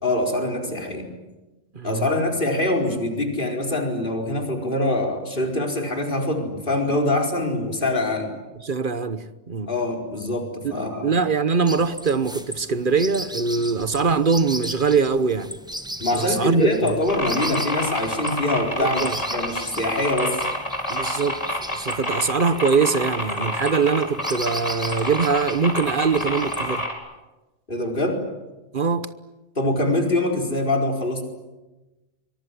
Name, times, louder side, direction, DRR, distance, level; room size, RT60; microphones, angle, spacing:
voice 1, 0.0-1.1 1.8-8.3 9.7-11.2 16.0-20.3 27.7-28.2 29.5-31.2, left 2 dB, 55° left, 4.8 m, -24 dB
voice 2, 1.7-2.2 8.6-9.7 10.6-10.7 11.0-15.5 16.1-17.0 18.8-19.2 20.9-21.4 21.7-26.9 28.7-29.1, right 5 dB, 55° right, 1.2 m, -22 dB
sound 1, 11.7-26.9, equal, 5° right, 1.3 m, -37 dB
sound 2, 17.1-26.9, left 1 dB, 35° left, 4.8 m, -27 dB
24.0 x 23.5 x 10.0 m
omnidirectional pair, 1.0 m